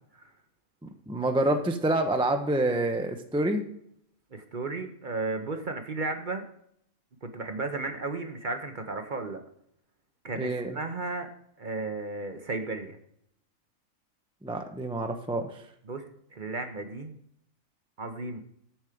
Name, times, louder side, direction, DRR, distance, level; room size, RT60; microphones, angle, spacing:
voice 1, 1.1-3.6 10.4-10.8 14.4-15.6, right 1 dB, 5° right, 6 dB, 0.5 m, -27 dB
voice 2, 4.3-6.4 7.2-9.4 10.2-11.3 11.6-13.0 15.9-16.0 16.3-17.1 18.0-18.4, right 3 dB, 40° right, 7 dB, 0.9 m, -34 dB
7.4 x 7.1 x 5.0 m, 0.70 s
omnidirectional pair, 1.5 m